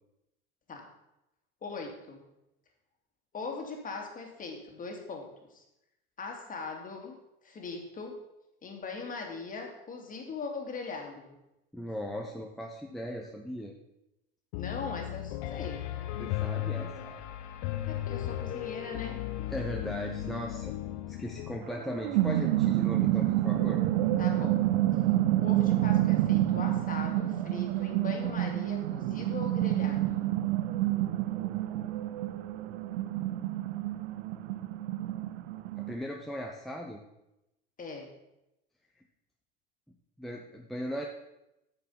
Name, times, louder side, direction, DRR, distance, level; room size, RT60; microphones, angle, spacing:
voice 1, 1.6-2.2 3.3-5.6 6.2-7.2 7.4-8.2 8.6-11.4 14.5-15.8 17.9-19.2 24.2-24.6 25.4-30.3 37.8-38.1, left 4 dB, 25° left, 2 dB, 2.5 m, -40 dB
voice 2, 11.7-13.7 16.2-17.2 19.5-20.7 21.1-23.8 35.8-37.0 40.2-41.1, equal, ahead, -1 dB, 1.0 m, -38 dB
Piano, 14.5-21.6, left 13 dB, 55° left, 1.0 m, -36 dB
sound 1, 21.7-35.9, right 14 dB, 65° right, 0.8 m, -28 dB
9.5 x 7.0 x 5.6 m, 0.90 s
hypercardioid pair, 90°, 31 cm